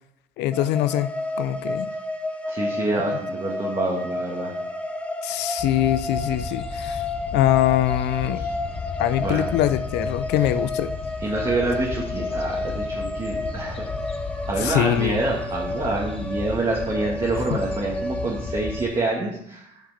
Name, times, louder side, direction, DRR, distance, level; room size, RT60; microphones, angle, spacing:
voice 1, 0.4-1.1 1.4-1.9 5.2-7.0 7.3-8.4 9.0-10.9 14.6-15.2, left 12 dB, 85° left, 13 dB, 0.5 m, -23 dB
sound 1, 0.5-19.0, left 2 dB, 5° left, 0.8 m, -31 dB
voice 2, 2.4-4.5 8.3-8.5 9.2-9.5 11.2-13.9 14.5-19.8, right 2 dB, 30° right, -3 dB, 1.7 m, -27 dB
sound 2, 5.6-18.9, left 4 dB, 35° left, 0.9 m, -35 dB
7.7 x 6.0 x 4.2 m, 0.77 s
cardioid pair, 110°, 17 cm